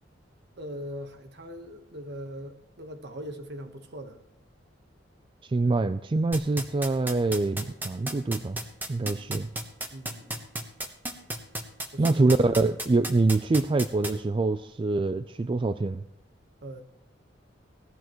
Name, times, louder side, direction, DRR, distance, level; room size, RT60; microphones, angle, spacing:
voice 1, 0.6-4.2 9.9-10.5 11.9-12.2 16.6-16.8, equal, 60° right, 1.3 m, -40 dB
voice 2, 5.5-8.6 8.9-9.5 12.0-16.0, right 3 dB, 25° right, 0.3 m, -25 dB
sound 1, 6.3-14.1, right 1 dB, 10° right, 1.1 m, -32 dB
17.0 x 12.5 x 3.1 m
head